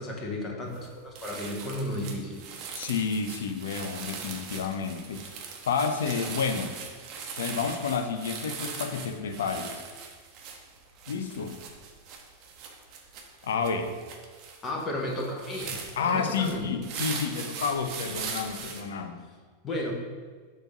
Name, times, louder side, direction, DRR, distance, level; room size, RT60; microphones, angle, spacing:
voice 1, 0.0-2.4 14.6-16.7 19.6-19.9, left 1 dB, 25° left, 0 dB, 1.3 m, -33 dB
sound 1, 0.7-0.9 1.1-18.8, right 5 dB, 40° right, 0.9 m, -40 dB
voice 2, 2.7-5.3 5.7-6.7 7.4-9.8 11.1-11.6 13.4-14.0 16.0-19.2, left 5 dB, 60° left, 8 dB, 0.6 m, -30 dB
6.7 x 3.1 x 5.4 m, 1.5 s
figure-of-eight pair, 90°, 0 cm